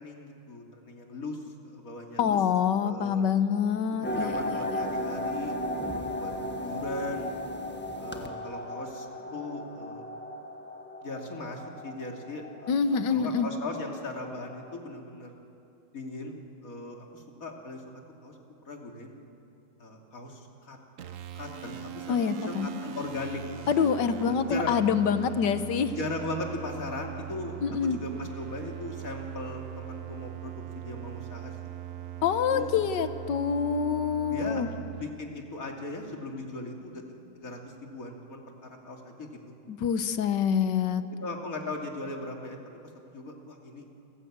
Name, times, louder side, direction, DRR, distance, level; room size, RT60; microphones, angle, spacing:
voice 1, 0.0-2.4 2.8-3.3 4.0-7.3 8.0-10.1 11.0-15.3 15.9-16.3 16.6-17.8 18.2-18.3 18.6-19.2 19.8-20.8 21.3-22.2 22.5-23.4 23.8-24.7 26.0-31.7 32.5-32.7 34.3-34.6 34.9-39.4 41.2-42.6 43.0-43.9, left 2 dB, 40° left, 1 dB, 2.9 m, -38 dB
voice 2, 2.2-4.8 12.7-13.5 22.1-22.7 23.7-26.0 27.6-28.0 32.2-34.7 39.7-41.1, left 7 dB, 60° left, 11 dB, 1.5 m, -26 dB
sound 1, 4.0-14.7, left 1 dB, 5° left, 1.2 m, -36 dB
sound 2, 21.0-35.1, right 10 dB, 55° right, 0.9 m, -40 dB
29.0 x 16.0 x 8.7 m, 2.6 s
omnidirectional pair, 2.3 m